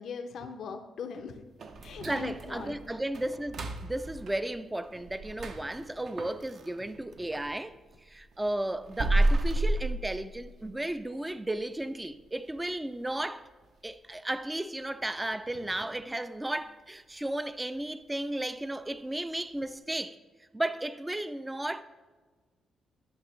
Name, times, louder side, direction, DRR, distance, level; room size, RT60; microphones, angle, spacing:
voice 1, 0.0-1.4 1.8-2.8, left 5 dB, 70° left, 0.5 m, -40 dB
sound 1, 1.6-7.5 7.9-10.8 11.1-11.2 11.7-11.8 12.3-12.7 13.0-13.1 13.6-13.7, right 2 dB, 60° right, 0.6 m, -32 dB
voice 2, 2.0-7.7 8.1-13.5 13.8-20.2 20.5-21.8, right 1 dB, 10° right, 0.3 m, -34 dB
11.5 x 5.8 x 3.2 m
cardioid pair, 100°, 0 cm